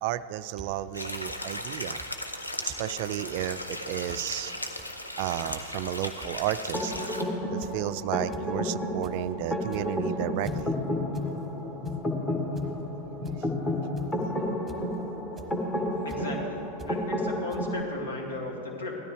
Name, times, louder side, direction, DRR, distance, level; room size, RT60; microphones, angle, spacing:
voice 1, 0.0-2.0 2.6-4.5 5.2-6.9 7.5-10.7 13.2-13.5 14.1-14.3 15.4-15.5, right 13 dB, 45° right, 15 dB, 0.3 m, -33 dB
sound 1, 0.6-0.7 1.3-1.4 2.0-2.2 2.4-2.8 3.4-3.6 4.0-4.2 4.6-4.9 5.3-5.6 6.2-6.5 6.9-7.2 7.6-7.9 8.3-8.5 8.8-9.1 9.6-10.0 10.4-10.6 11.1-11.3 11.6-12.0 12.6-12.7 13.2-13.4 14.0-14.2 14.7-14.9 15.4-15.5 16.1-16.2 16.8-16.9 17.5-17.6, right 3 dB, 10° right, 1.2 m, -46 dB
sound 2, 0.9-7.2, left 1 dB, 85° left, 0.9 m, -36 dB
sound 3, 6.7-17.8, left 1 dB, 15° left, 1.5 m, -31 dB
voice 2, 16.0-19.0, left 2 dB, 65° left, 0 dB, 2.2 m, -36 dB
17.0 x 12.5 x 3.3 m, 2.8 s
figure-of-eight pair, 90°, 0 cm